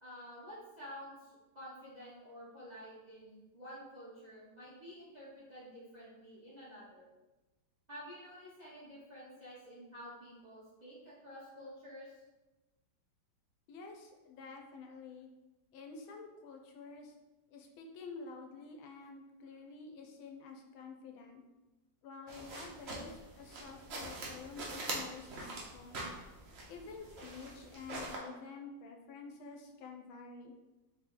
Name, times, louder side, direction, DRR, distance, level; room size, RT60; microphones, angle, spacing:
voice 1, 0.0-7.1 7.9-12.2, equal, 30° right, -9 dB, 0.8 m, -50 dB
voice 2, 13.7-15.3 15.7-17.1 17.5-21.4 22.0-26.0 26.7-30.6, left 4 dB, 90° left, 3 dB, 1.5 m, -49 dB
sound 1, 22.3-28.2, right 2 dB, 70° right, 0.6 m, -44 dB
3.7 x 2.9 x 3.7 m, 1.1 s
omnidirectional pair, 2.2 m